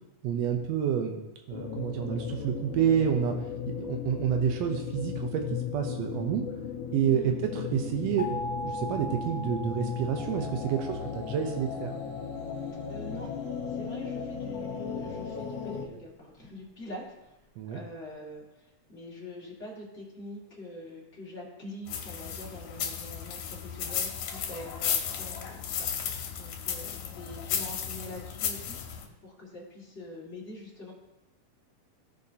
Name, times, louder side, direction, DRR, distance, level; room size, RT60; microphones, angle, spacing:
voice 1, 0.2-1.2 1.5-3.3 3.7-5.4 5.7-6.4 6.9-11.9 17.6-17.8, right 9 dB, 85° right, 3 dB, 1.5 m, -29 dB
sound 1, 1.5-15.9, left 8 dB, 75° left, 1.5 m, -36 dB
sound 2, 8.2-12.9, left 1 dB, 35° right, 1.7 m, -40 dB
voice 2, 12.9-13.3 13.7-17.3 17.7-28.9 29.2-30.9, left 1 dB, 25° left, -5 dB, 1.7 m, -44 dB
sound 3, 21.9-29.1, left 8 dB, 90° left, 2.6 m, -34 dB
15.5 x 5.4 x 2.8 m, 0.98 s
omnidirectional pair, 3.9 m